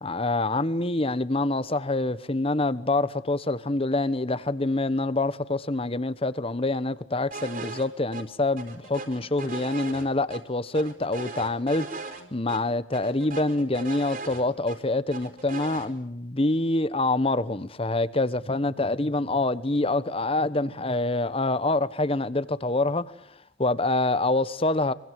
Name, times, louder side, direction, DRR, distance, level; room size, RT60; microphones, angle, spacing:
voice 1, 0.0-12.1 12.3-23.0 23.6-24.9, left 2 dB, 30° left, 1.0 m, -26 dB
sound 1, 7.3-7.9 8.1-8.2 8.6-10.4 10.7-12.2 12.5-12.6 12.9-14.8 15.1-15.9, right 3 dB, 45° right, 4.8 m, -38 dB
25.5 x 24.0 x 7.6 m
head